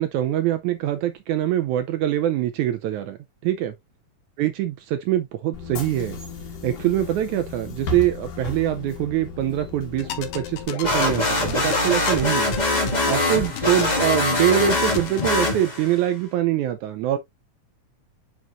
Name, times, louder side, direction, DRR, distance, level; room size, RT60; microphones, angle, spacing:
voice 1, 0.0-3.2 3.4-3.7 4.4-6.2 6.6-12.5 12.8-17.2, right 12 dB, 80° right, 1.7 m, -24 dB
Bus / Engine, 5.5-10.7, left 4 dB, 60° left, 2.9 m, -35 dB
sound 1, 10.0-15.3, left 11 dB, 80° left, 2.7 m, -34 dB
sound 2, 10.8-16.0, left 1 dB, 30° left, 0.8 m, -23 dB
9.1 x 4.3 x 2.4 m
omnidirectional pair, 4.1 m